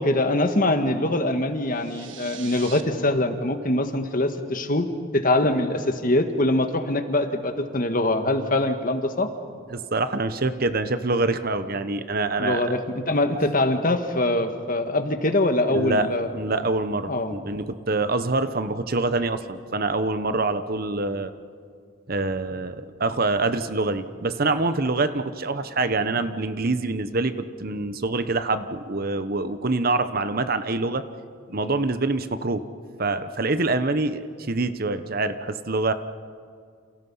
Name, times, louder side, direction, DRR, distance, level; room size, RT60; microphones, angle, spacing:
voice 1, 0.0-4.9 5.1-9.3 12.4-16.3 17.1-17.4, left 1 dB, 40° left, 7 dB, 1.7 m, -23 dB
sound 1, 1.7-2.8, right 10 dB, 65° right, 1.6 m, -42 dB
voice 2, 9.7-12.7 15.7-21.3 22.1-27.3 27.6-31.0 31.5-32.6 33.0-35.9, right 3 dB, 45° right, 11 dB, 1.0 m, -25 dB
30.0 x 28.5 x 5.6 m, 2.2 s
head